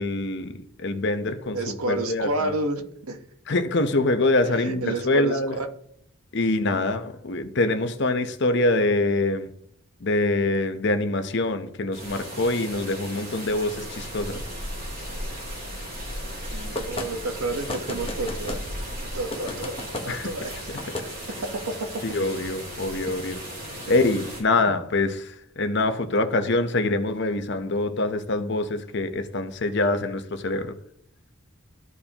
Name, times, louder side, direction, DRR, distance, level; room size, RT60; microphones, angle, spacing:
voice 1, 0.0-2.5 3.5-5.6 6.3-9.5 10.0-14.4 20.1-20.3 22.0-23.4 23.9-25.3 25.6-30.7, left 2 dB, 55° left, 0.8 m, -25 dB
voice 2, 1.5-2.8 3.1-3.2 4.6-5.7 16.2-18.6 19.0-19.8 20.0-20.7 21.5-21.7 23.1-23.2 24.6-24.8, right 2 dB, 90° right, 1.1 m, -30 dB
sound 1, 11.9-24.4, equal, 40° right, 3.4 m, -36 dB
sound 2, 16.7-17.1 17.7-18.6 19.3-20.1 20.8-21.1, left 2 dB, 25° left, 0.9 m, -32 dB
14.0 x 4.7 x 2.9 m
head